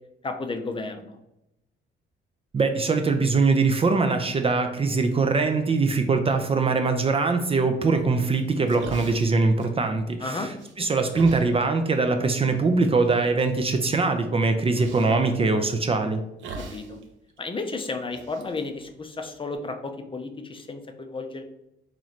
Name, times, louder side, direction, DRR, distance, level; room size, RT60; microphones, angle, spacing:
voice 1, 0.2-1.2 10.2-10.5 16.5-17.0 17.4-21.4, left 3 dB, 25° left, 5 dB, 0.5 m, -33 dB
voice 2, 2.5-10.5 10.8-16.2, right 3 dB, 30° right, 6 dB, 0.4 m, -22 dB
sound 1, 8.4-10.2 10.6-11.5 12.4-12.5 13.0-13.5 14.7-15.2 16.4-17.0 17.3-17.4 18.0-19.5, right 3 dB, 70° right, 0.7 m, -41 dB
3.1 x 3.0 x 4.0 m, 0.84 s
cardioid pair, 90°, 20 cm